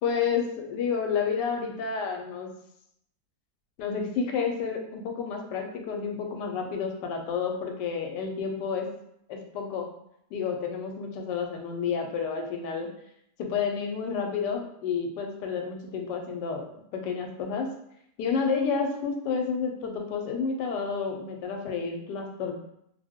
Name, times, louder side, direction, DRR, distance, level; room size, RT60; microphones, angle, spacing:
voice 1, 0.0-2.5 3.8-8.9 9.3-9.9 10.3-12.9 13.4-17.7 18.2-22.6, left 6 dB, 90° left, 3 dB, 1.2 m, -30 dB
2.7 x 2.1 x 3.4 m, 0.75 s
omnidirectional pair, 1.8 m